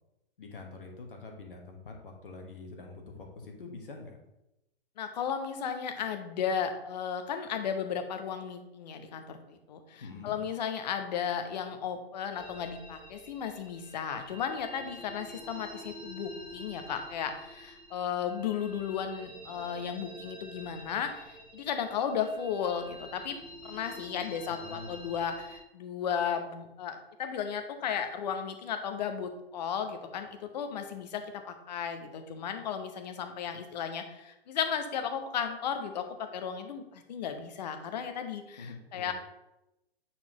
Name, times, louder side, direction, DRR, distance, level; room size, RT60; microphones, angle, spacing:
voice 1, 0.4-4.2 10.0-10.4 24.4-25.1 38.6-39.1, left 3 dB, 65° left, 2 dB, 1.3 m, -45 dB
voice 2, 5.0-23.4 23.6-31.2 31.7-39.1, left 7 dB, 45° left, 7 dB, 0.9 m, -35 dB
sound 1, 12.3-25.6, equal, 5° right, 1.5 m, -48 dB
8.7 x 4.3 x 3.0 m, 0.90 s
figure-of-eight pair, 110°, 30 cm